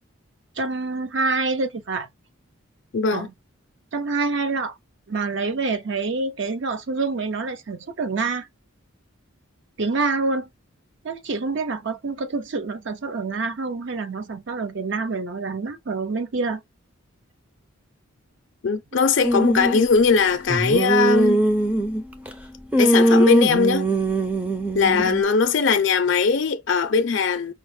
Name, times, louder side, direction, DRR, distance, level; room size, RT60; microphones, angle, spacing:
voice 1, 0.6-2.1 3.1-3.3 3.9-4.7 5.1-8.5 9.8-10.5 11.0-16.6 25.0-25.1, right 3 dB, 60° right, 0.5 m, -26 dB
voice 2, 2.9-3.3 18.6-21.5 22.8-23.9 24.7-27.5, left 5 dB, 60° left, 0.5 m, -20 dB
sound 1, 19.2-19.9 20.5-22.3 22.7-25.2, right 1 dB, 5° right, 0.4 m, -20 dB
5.1 x 2.1 x 3.1 m
head